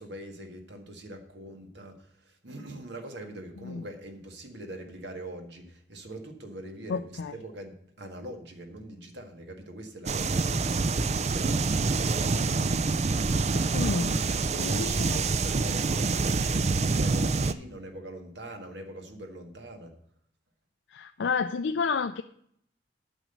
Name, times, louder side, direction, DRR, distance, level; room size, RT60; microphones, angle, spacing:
voice 1, 0.0-10.7 11.0-12.2 14.0-19.9, right 1 dB, 70° right, 5 dB, 1.7 m, -43 dB
voice 2, 6.9-7.3 13.7-14.1 14.6-15.2 20.9-22.2, left 5 dB, 75° left, 9 dB, 0.4 m, -30 dB
sound 1, 10.1-17.5, right 3 dB, 35° right, 0.4 m, -26 dB
9.3 x 6.2 x 8.0 m, 0.67 s
head